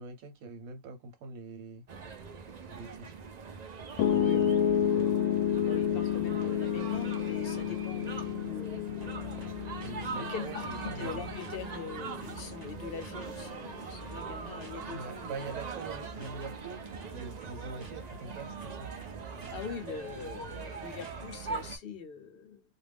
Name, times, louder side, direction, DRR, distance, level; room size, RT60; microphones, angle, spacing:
voice 1, 0.0-1.8 2.7-3.2 4.1-4.5 9.8-11.3 14.9-16.8 17.1-18.9, right 4 dB, 85° right, 1.3 m, -43 dB
sound 1, 1.9-21.8, right 5 dB, 55° right, 0.4 m, -42 dB
Piano, 4.0-16.2, left 9 dB, 90° left, 1.0 m, -31 dB
voice 2, 4.1-4.5 4.9-5.1 5.6-9.2 10.1-15.5 19.5-22.6, left 5 dB, 55° left, 0.7 m, -43 dB
sound 2, 9.0-21.8, right 3 dB, 20° right, 0.6 m, -49 dB
2.6 x 2.3 x 3.4 m
omnidirectional pair, 1.4 m